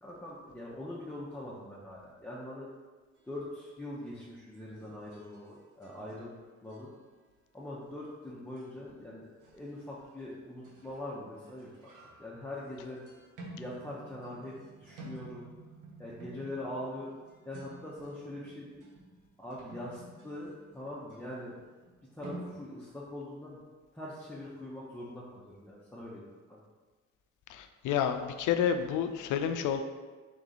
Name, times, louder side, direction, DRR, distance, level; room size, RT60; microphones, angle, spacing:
voice 1, 0.0-2.7 3.3-6.3 6.6-6.9 7.5-9.3 9.5-11.9 12.2-13.0 13.6-14.5 14.8-15.5 16.0-17.1 17.4-18.8 19.4-21.6 22.2-23.6 23.9-26.2 26.5-26.6, left 1 dB, 5° left, -7 dB, 0.7 m, -42 dB
sound 1, 4.0-4.4 4.8-6.3 6.7-6.9 8.6-8.7 9.4-10.1 10.6-11.0 11.4-22.6, right 2 dB, 85° right, 0.9 m, -51 dB
voice 2, 27.5-29.8, left 8 dB, 80° left, 8 dB, 0.4 m, -29 dB
3.8 x 3.0 x 3.9 m, 1.3 s
cardioid pair, 90°, 30 cm